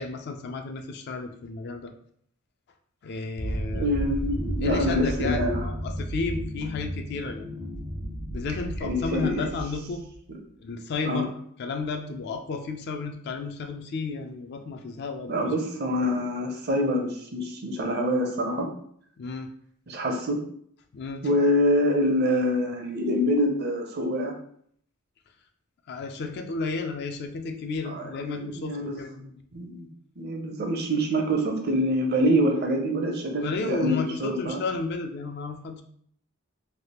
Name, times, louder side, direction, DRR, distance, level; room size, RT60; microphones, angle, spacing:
voice 1, 0.0-1.9 3.0-3.9 4.6-7.4 8.3-10.0 10.6-11.3 11.6-15.5 19.2-19.5 20.9-21.2 25.9-29.1 33.4-35.8, left 4 dB, 55° left, 6 dB, 0.3 m, -32 dB
sound 1, 3.4-10.2, equal, 80° left, 1.4 m, -33 dB
voice 2, 3.7-5.7 8.8-9.4 11.0-11.2 15.3-18.7 19.9-20.4 21.2-24.3 27.9-29.3 29.5-29.9 30.2-34.6, equal, 50° right, 3 dB, 0.6 m, -25 dB
3.3 x 2.3 x 2.9 m, 0.64 s
head